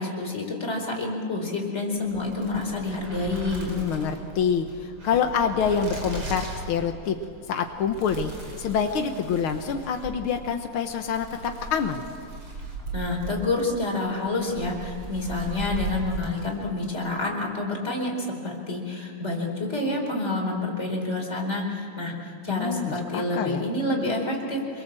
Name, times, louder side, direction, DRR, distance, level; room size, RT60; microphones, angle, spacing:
voice 1, 0.0-3.7 12.9-22.1 22.4-24.8, left 2 dB, 20° left, -1 dB, 4.5 m, -28 dB
sound 1, 2.0-16.9, right 3 dB, 40° right, 5.6 m, -38 dB
voice 2, 3.7-7.2 7.5-8.3 8.6-12.0 22.5-23.6, left 7 dB, 75° left, 6 dB, 1.2 m, -26 dB
27.0 x 22.5 x 7.6 m, 2.3 s
omnidirectional pair, 3.8 m